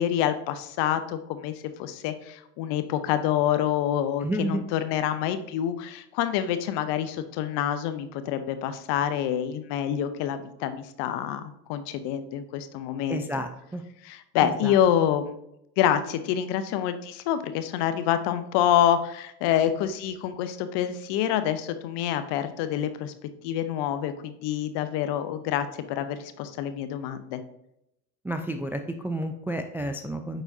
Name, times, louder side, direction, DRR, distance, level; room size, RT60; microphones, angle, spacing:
voice 1, 0.0-1.5 1.8-13.2 14.0-15.3 15.8-23.1 23.4-27.4, left 10 dB, 60° left, 10 dB, 0.8 m, -27 dB
voice 2, 4.2-4.6 13.1-13.8 14.4-14.8 28.2-30.4, right 1 dB, 5° right, 6 dB, 0.3 m, -31 dB
8.8 x 4.0 x 2.7 m, 0.80 s
hypercardioid pair, 65°, 47 cm